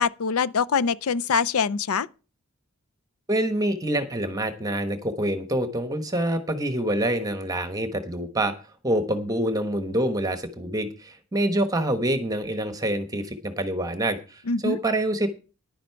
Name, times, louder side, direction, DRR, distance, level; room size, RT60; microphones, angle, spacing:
voice 1, 0.0-2.1 14.5-14.8, left 5 dB, 70° left, 0.5 m, -24 dB
voice 2, 3.3-8.5 8.8-15.3, right 1 dB, 15° right, 1.1 m, -26 dB
10.5 x 10.0 x 4.6 m
head